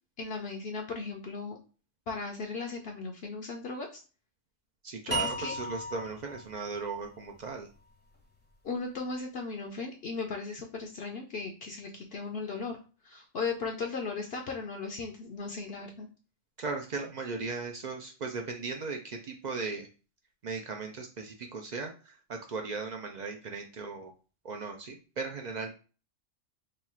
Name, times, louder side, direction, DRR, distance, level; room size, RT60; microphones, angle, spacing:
voice 1, 0.2-1.6 2.1-4.0 5.1-5.5 8.6-12.8 13.0-16.1, left 4 dB, 60° left, 1 dB, 0.7 m, -37 dB
voice 2, 4.8-7.7 16.6-19.9 20.4-24.1 24.4-25.7, right 4 dB, 65° right, 3 dB, 0.4 m, -37 dB
sound 1, 5.1-8.3, right 1 dB, 10° left, 0.5 m, -37 dB
3.0 x 2.4 x 4.2 m, 0.35 s
omnidirectional pair, 1.3 m